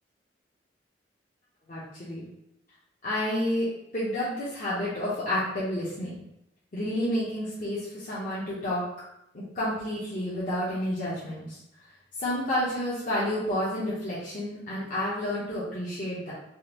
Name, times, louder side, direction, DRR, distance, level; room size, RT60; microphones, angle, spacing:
voice 1, 1.7-2.2 3.0-3.7 3.9-6.2 6.7-8.8 9.3-11.6 12.2-16.3, left 1 dB, 45° left, -9 dB, 0.8 m, -30 dB
3.6 x 2.5 x 3.0 m, 0.82 s
head